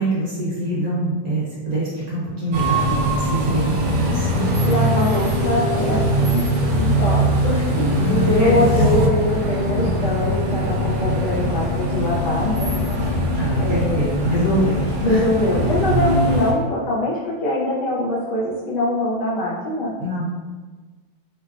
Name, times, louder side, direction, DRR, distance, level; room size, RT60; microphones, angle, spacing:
voice 1, 0.0-4.4 8.0-8.8 13.4-15.2 20.0-20.3, right 1 dB, 55° right, -8 dB, 1.3 m, -24 dB
sound 1, 2.5-16.5, equal, 75° right, 1.2 m, -21 dB
voice 2, 4.6-6.5 6.8-12.7 13.6-14.0 15.0-19.9, left 1 dB, 70° left, -7 dB, 1.2 m, -23 dB
3.2 x 2.1 x 2.5 m, 1.3 s
omnidirectional pair, 2.1 m